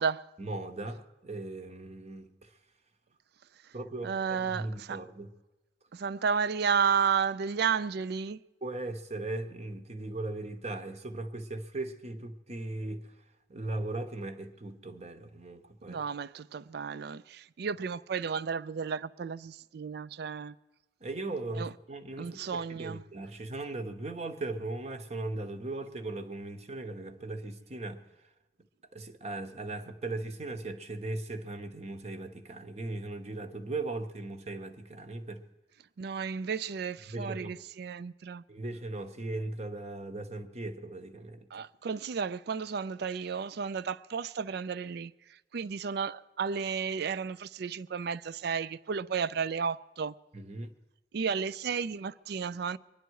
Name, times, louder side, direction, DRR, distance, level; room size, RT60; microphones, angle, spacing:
voice 1, 0.4-2.5 3.7-5.3 8.6-13.0 13.5-16.0 21.0-28.0 28.9-35.4 37.1-37.6 38.5-41.6 50.3-50.7, right 2 dB, 35° right, 1.0 m, -38 dB
voice 2, 4.0-5.0 5.9-8.4 15.9-20.5 21.6-21.7 22.2-23.0 36.0-38.4 41.5-50.1 51.1-52.8, right 6 dB, 60° right, 0.4 m, -32 dB
24.0 x 10.5 x 4.7 m
head